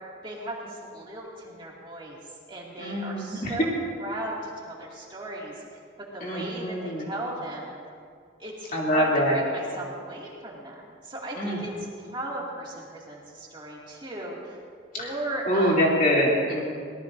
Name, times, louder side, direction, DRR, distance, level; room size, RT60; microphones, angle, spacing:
voice 1, 0.2-2.2 2.5-3.7 4.0-4.3 4.7-5.5 6.0-7.7 8.4-14.6 15.0-15.8, right 1 dB, 25° right, -4 dB, 2.4 m, -36 dB
voice 2, 2.8-3.6 6.2-7.1 8.7-9.4 11.4-11.6 15.0-15.1 15.4-16.6, equal, 40° left, -4 dB, 3.0 m, -24 dB
24.0 x 18.5 x 2.7 m, 2.2 s
head